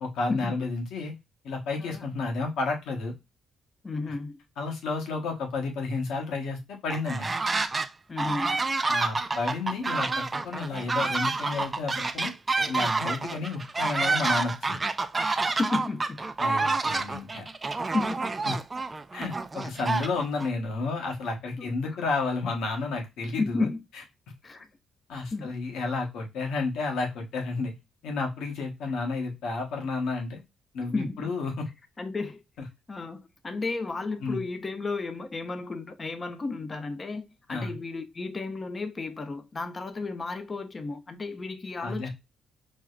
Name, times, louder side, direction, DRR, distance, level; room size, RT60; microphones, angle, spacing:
voice 1, 0.0-1.1 1.4-3.1 4.1-4.2 4.6-7.3 8.9-12.3 12.7-14.8 16.4-17.5 18.5-18.6 19.1-23.7 25.1-27.7 28.0-30.4 30.7-31.7 34.2-34.4 37.5-37.8 41.8-42.1, left 3 dB, 85° left, 1.1 m, -31 dB
voice 2, 3.8-4.4 8.1-8.7 15.6-16.2 16.6-16.8 17.9-18.3 21.6-21.7 23.4-23.8 24.4-24.7 25.3-25.6 30.9-31.3 32.0-32.4 32.9-42.1, left 3 dB, 30° left, 0.6 m, -33 dB
sound 1, 6.9-7.9 8.2-20.5, right 3 dB, 25° right, 0.3 m, -28 dB
4.7 x 2.1 x 2.3 m
cardioid pair, 90°, 0 cm